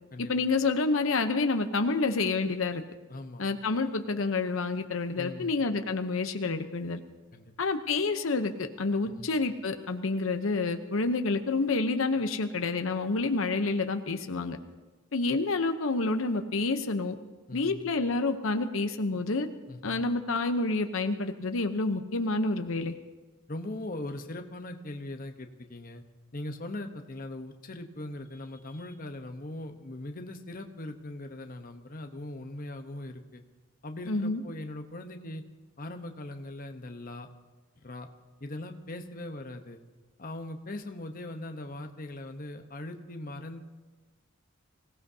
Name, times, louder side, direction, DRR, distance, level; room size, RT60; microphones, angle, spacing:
voice 1, 0.2-2.8 3.4-7.0 7.6-14.6 15.1-17.1 17.5-19.5 19.8-22.9 34.1-34.4, left 3 dB, 80° left, 7 dB, 0.8 m, -28 dB
voice 2, 3.1-3.4 5.2-5.6 7.3-7.5 9.0-9.3 17.5-17.8 19.7-20.0 23.5-26.0 26.3-33.4 33.8-35.4 35.8-37.3 37.8-38.1 38.4-39.8 40.2-43.6, left 1 dB, 45° left, 5 dB, 1.0 m, -40 dB
24.5 x 17.0 x 2.8 m, 1.2 s
head